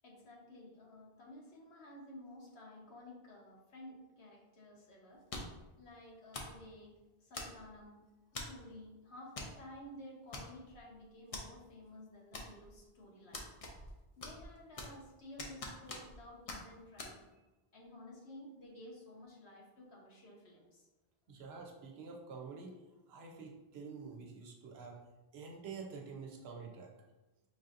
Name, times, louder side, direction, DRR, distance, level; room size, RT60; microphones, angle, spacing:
voice 1, 0.0-5.2 5.8-6.9 7.2-8.0 8.3-13.5 14.2-17.5 17.7-20.9, left 1 dB, 85° left, -3 dB, 1.3 m, -53 dB
sound 1, 5.3-5.7 6.3-6.6 7.3-7.8 8.4-8.6 9.4-9.6 9.8-9.9 10.3-10.8 11.3-11.5 12.3-12.8 13.3-13.9 14.2-15.0 15.4-16.2 16.5-16.6 17.0-17.1, left 2 dB, 45° left, 0.5 m, -44 dB
voice 2, 21.3-22.8 23.1-25.0 25.3-26.9, right 5 dB, 80° right, 1 dB, 1.0 m, -48 dB
5.4 x 2.7 x 2.5 m, 1.1 s
omnidirectional pair, 1.0 m